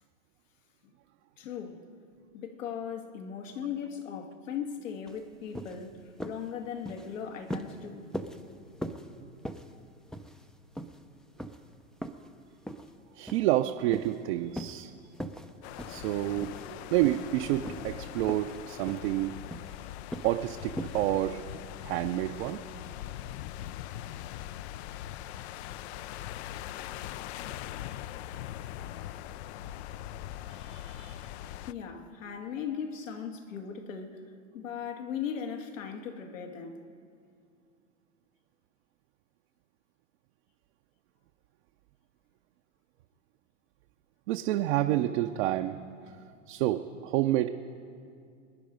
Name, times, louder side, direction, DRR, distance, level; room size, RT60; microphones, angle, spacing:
voice 1, 1.4-1.8 2.3-6.0 6.2-8.1 31.7-34.2 34.5-36.8 46.1-46.2, left 7 dB, 75° left, 1.9 m, -38 dB
sound 1, 5.1-5.2 5.5-5.8 6.2-6.5 6.8-7.1 7.5-7.8 8.1-8.4 8.8-9.1 9.4-9.7 10.1-10.5 10.8-11.0 11.4-11.6 12.0-12.3 12.7-12.9 13.3-13.6 13.9-14.2 14.5-14.8 15.2-15.5 15.8-16.1 16.4-16.7 17.0-17.3 17.6-18.0 18.3-18.6 18.9-19.1 19.5-19.8 20.1-20.4 20.8-21.0, equal, ahead, 0.4 m, -39 dB
voice 2, 13.2-14.9 15.9-19.3 20.2-21.5 21.8-22.6 30.7-31.2 44.3-45.8 46.5-47.5, right 14 dB, 55° right, 0.7 m, -29 dB
sound 2, 15.6-31.7, left 12 dB, 55° left, 0.5 m, -41 dB
22.5 x 10.0 x 5.2 m
hypercardioid pair, 115°, 39 cm